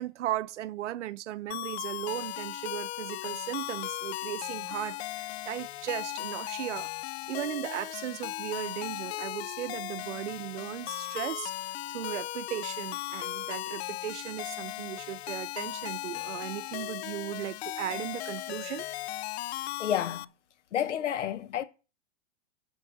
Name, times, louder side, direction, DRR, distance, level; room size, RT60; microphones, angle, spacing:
voice 1, 0.0-6.9 7.3-11.5 11.9-18.9, right 13 dB, 85° right, 0.7 m, -37 dB
sound 1, 1.5-20.3, left 16 dB, 65° left, 0.5 m, -37 dB
voice 2, 19.8-20.3 20.7-21.6, left 10 dB, 90° left, 1.2 m, -30 dB
8.3 x 5.5 x 7.6 m
hypercardioid pair, 135°, 35 cm